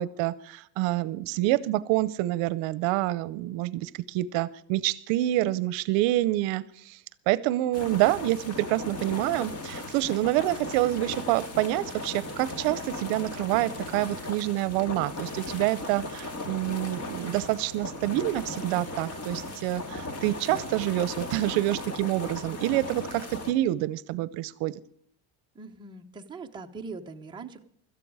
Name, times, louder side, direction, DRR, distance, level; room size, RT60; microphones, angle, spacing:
voice 1, 0.0-7.0 7.3-24.7, right 16 dB, 70° right, 18 dB, 0.8 m, -27 dB
sound 1, 7.7-23.5, left 2 dB, 30° left, 2.0 m, -37 dB
voice 2, 25.5-27.6, right 4 dB, 10° right, 2 dB, 0.8 m, -41 dB
17.5 x 13.5 x 4.8 m, 0.66 s
cardioid pair, 150°, 47 cm